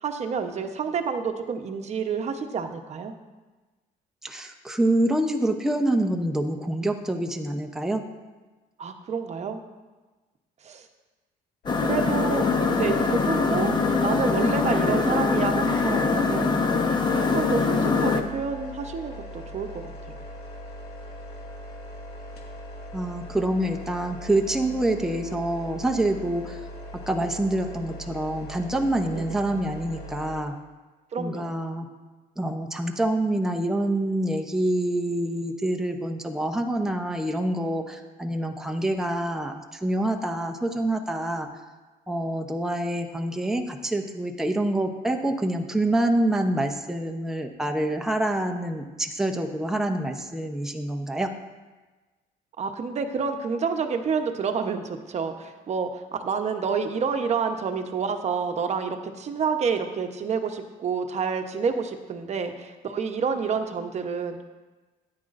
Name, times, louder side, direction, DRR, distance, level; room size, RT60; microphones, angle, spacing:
voice 1, 0.0-3.1 8.8-9.6 10.6-10.9 11.8-13.7 14.0-16.5 17.1-20.2 29.1-29.2 31.1-31.6 52.6-64.4, right 5 dB, 40° right, 6 dB, 1.0 m, -29 dB
voice 2, 4.2-8.1 22.9-26.6 26.9-30.5 31.2-31.9 32.4-41.5 42.1-51.3, right 1 dB, 5° right, 3 dB, 0.8 m, -26 dB
buzzing fridge, 11.6-30.4, equal, 70° left, 2.1 m, -40 dB
sound 1, 11.7-18.2, left 4 dB, 25° left, 0.9 m, -23 dB
13.0 x 9.7 x 2.6 m, 1.2 s
cardioid pair, 110°, 17 cm